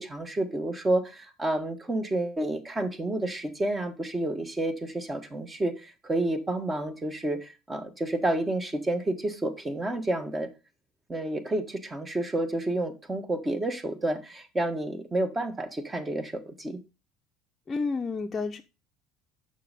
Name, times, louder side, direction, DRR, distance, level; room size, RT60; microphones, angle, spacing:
voice 1, 0.0-10.5 11.1-16.8, right 1 dB, 20° right, 1.5 m, -30 dB
voice 2, 17.7-18.6, left 4 dB, 25° left, 0.7 m, -30 dB
6.6 x 5.3 x 5.1 m
hypercardioid pair, 65°, 0 cm